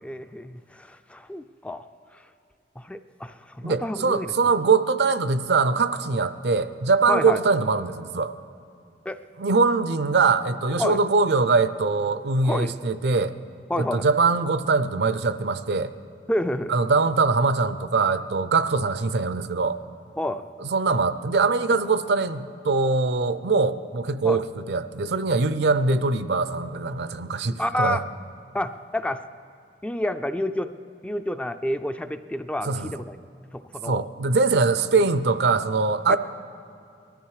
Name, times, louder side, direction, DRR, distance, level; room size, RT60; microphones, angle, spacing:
voice 1, 0.0-1.8 2.1-2.2 2.8-4.3 7.1-7.4 9.1-9.2 10.8-11.0 12.4-12.7 13.7-14.1 16.3-16.7 20.2-20.5 24.2-24.4 27.6-28.0 28.5-29.2 29.8-30.7 31.0-33.2 33.5-34.1 36.1-36.2, left 1 dB, 5° left, 9 dB, 0.3 m, -29 dB
voice 2, 3.6-8.3 9.4-13.3 13.8-15.9 16.7-19.8 20.6-28.0 32.6-32.9 33.8-36.2, right 4 dB, 70° right, 13 dB, 0.5 m, -22 dB
19.5 x 13.0 x 4.8 m, 2.6 s
head